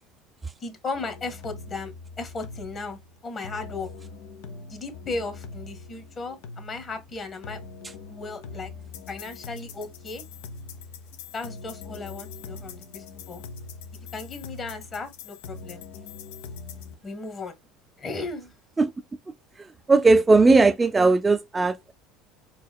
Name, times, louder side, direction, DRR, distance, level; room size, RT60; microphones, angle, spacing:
voice 1, 0.6-3.9 4.7-7.6 8.1-8.7 9.1-10.2 11.3-13.4 14.1-15.8 17.0-17.5 18.0-18.5, left 3 dB, 35° left, 1.7 m, -36 dB
sound 1, 0.9-16.9, left 4 dB, 80° left, 0.9 m, -42 dB
voice 2, 19.6-21.9, right 3 dB, 20° right, 0.3 m, -18 dB
4.7 x 3.7 x 2.2 m
supercardioid pair, 100°, 0 cm